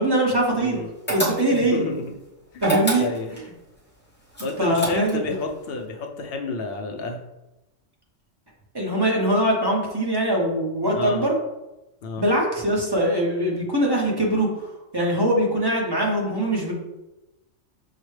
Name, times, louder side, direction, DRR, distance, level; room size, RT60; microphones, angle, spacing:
voice 1, 0.0-0.8 1.1-1.9 2.6-3.1 4.6-5.2 8.7-11.4 12.2-16.7, right 1 dB, 25° right, -2 dB, 0.7 m, -22 dB
voice 2, 0.6-0.9 1.5-2.2 2.5-2.6 3.0-3.3 4.4-7.2 10.9-11.3 12.0-12.2, left 3 dB, 60° left, 3 dB, 0.7 m, -30 dB
sound 1, 1.1-1.8 2.6-3.5 4.3-5.3, right 3 dB, 10° left, 0.8 m, -26 dB
6.5 x 2.2 x 3.1 m, 0.98 s
omnidirectional pair, 1.3 m